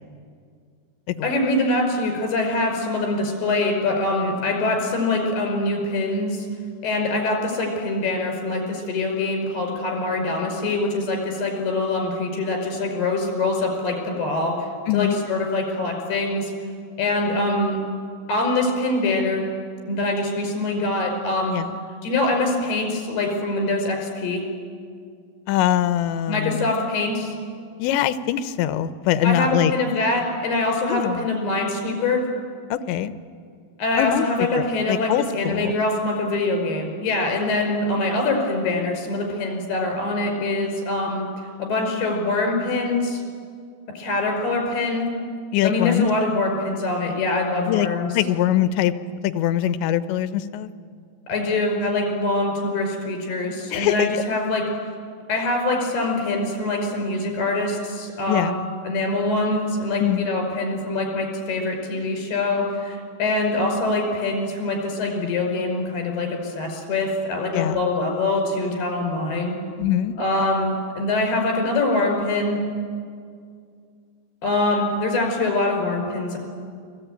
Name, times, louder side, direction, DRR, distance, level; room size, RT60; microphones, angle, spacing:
voice 1, 1.2-6.5 6.8-14.5 14.9-16.5 17.0-17.8 18.3-19.4 19.9-21.5 22.0-24.4 26.3-27.3 29.2-32.2 33.8-41.3 41.6-43.2 44.0-45.1 45.6-48.1 51.3-54.6 55.3-69.6 70.2-72.6 74.4-76.4, left 2 dB, 65° left, 3 dB, 6.9 m, -24 dB
voice 2, 14.9-15.2 21.5-21.8 25.5-26.7 27.8-29.7 30.9-31.3 32.7-33.1 33.9-35.7 45.5-46.1 47.7-47.9 48.1-48.9 49.2-50.7 53.7-54.1 58.3-58.7 60.0-60.2 67.5-67.8 69.8-70.2, left 11 dB, 85° left, 12 dB, 3.2 m, -23 dB
29.5 x 22.0 x 9.1 m, 2.2 s
omnidirectional pair, 5.0 m